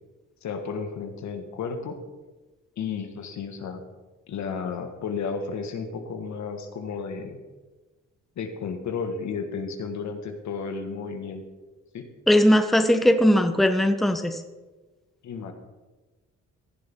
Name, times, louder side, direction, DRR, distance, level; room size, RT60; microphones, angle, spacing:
voice 1, 0.4-2.0 2.8-3.8 4.3-7.4 8.3-11.4 11.9-12.1 15.2-15.5, left 5 dB, 65° left, 5 dB, 1.8 m, -33 dB
voice 2, 12.3-14.4, equal, ahead, 7 dB, 1.0 m, -19 dB
15.5 x 11.0 x 3.7 m, 1.2 s
cardioid pair, 90°, 30 cm